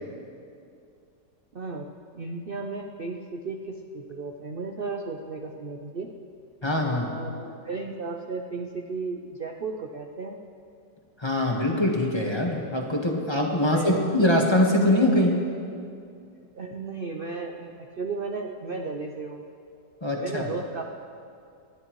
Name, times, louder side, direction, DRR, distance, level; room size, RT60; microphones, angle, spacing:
voice 1, 1.5-1.9 2.1-6.1 6.9-10.4 13.6-14.1 16.5-19.4 20.2-20.8, right 4 dB, 65° right, 2 dB, 0.5 m, -34 dB
voice 2, 6.6-7.0 11.2-15.4 20.0-20.5, left 1 dB, 15° left, 0 dB, 1.3 m, -23 dB
27.5 x 11.0 x 3.1 m, 2.4 s
omnidirectional pair, 1.9 m